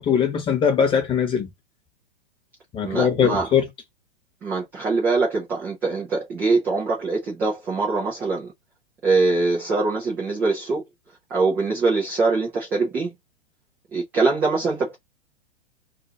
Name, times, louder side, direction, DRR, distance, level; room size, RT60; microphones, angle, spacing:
voice 1, 0.0-1.5 2.7-3.7, left 7 dB, 15° left, 0.9 m, -21 dB
voice 2, 2.8-3.5 4.4-8.5 9.0-10.8 11.3-13.1 13.9-14.9, right 3 dB, 5° right, 0.3 m, -23 dB
2.5 x 2.3 x 2.7 m
figure-of-eight pair, 105°, 32 cm